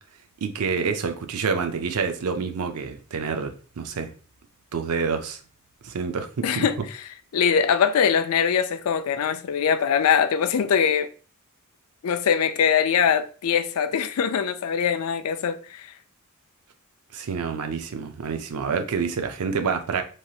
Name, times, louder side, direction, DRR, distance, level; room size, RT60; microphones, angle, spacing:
voice 1, 0.4-4.1 4.7-5.4 5.8-6.3 6.5-6.7 17.1-20.0, right 5 dB, 85° right, 0.5 m, -27 dB
voice 2, 6.4-11.1 12.0-15.9, left 7 dB, 70° left, 0.4 m, -22 dB
3.2 x 2.7 x 2.3 m
head